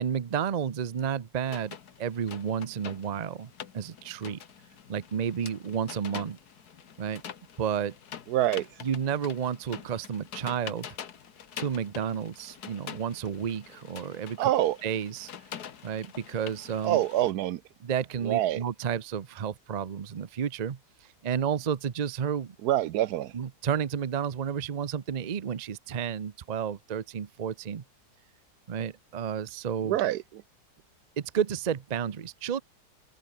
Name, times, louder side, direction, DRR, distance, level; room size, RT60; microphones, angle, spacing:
voice 1, 0.0-4.4 4.9-6.4 7.0-7.2 7.6-7.9 8.8-10.9 11.6-14.5 14.8-15.3 15.8-17.0 17.8-20.8 21.2-22.6 23.3-27.8 28.7-30.0 31.2-32.6, right 8 dB, 45° right, 0.5 m, -31 dB
sound 1, 1.5-17.3, left 8 dB, 75° left, 1.8 m, -45 dB
voice 2, 8.3-8.8 14.4-14.8 16.8-17.6 18.2-18.6 22.6-23.3 29.8-30.4, right 13 dB, 80° right, 1.1 m, -26 dB
omnidirectional pair, 1.7 m